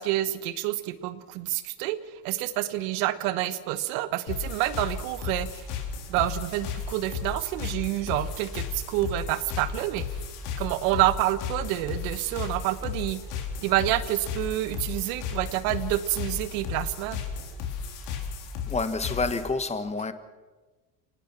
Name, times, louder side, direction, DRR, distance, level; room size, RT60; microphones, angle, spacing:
voice 1, 0.0-2.0 2.2-5.7 6.1-10.0 10.6-13.2 13.6-17.2, right 15 dB, 80° right, 1.3 m, -28 dB
sound 1, 4.3-19.5, left 6 dB, 75° left, 4.1 m, -34 dB
voice 2, 18.7-20.1, left 3 dB, 15° left, 1.6 m, -28 dB
25.0 x 19.0 x 6.1 m
supercardioid pair, 105°, 41 cm